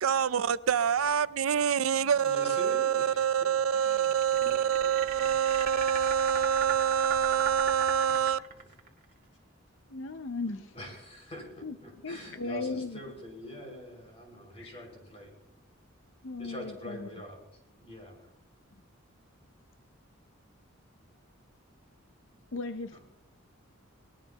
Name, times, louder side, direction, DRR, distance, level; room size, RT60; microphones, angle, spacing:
voice 1, 0.0-8.4, right 8 dB, 90° right, 16 dB, 0.5 m, -26 dB
voice 2, 1.8-4.9 5.2-5.7 8.1-8.3 8.6-8.7 10.7-15.3 16.4-17.4 17.8-18.3, equal, 30° left, 0 dB, 5.8 m, -45 dB
sound 1, 3.8-8.9, right 7 dB, 40° right, 2.2 m, -36 dB
voice 3, 9.9-10.7 11.6-11.8 12.0-13.0 14.6-14.8 16.2-17.1 22.5-23.0, left 3 dB, 65° left, 9 dB, 0.6 m, -36 dB
23.0 x 20.0 x 3.0 m, 0.86 s
head